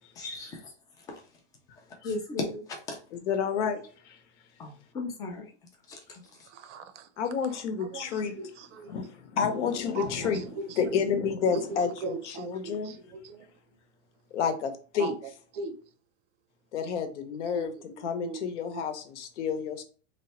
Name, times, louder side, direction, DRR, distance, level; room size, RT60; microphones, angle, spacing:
voice 1, 0.2-0.7 1.1-1.2 2.0-3.0 4.6-5.5 5.9-6.2, left 3 dB, 10° left, 0.4 m, -36 dB
voice 2, 3.1-4.2 7.2-8.4 8.9-10.4 10.8-13.0 14.3-15.1 16.7-19.8, left 6 dB, 75° left, 0.9 m, -30 dB
voice 3, 6.5-7.1 7.5-8.9 10.0-11.0 11.5-13.5 15.0-15.1 15.5-15.7 17.4-18.4 18.7-18.9, right 4 dB, 80° right, 0.7 m, -39 dB
3.2 x 2.2 x 4.1 m
supercardioid pair, 155°, 36 cm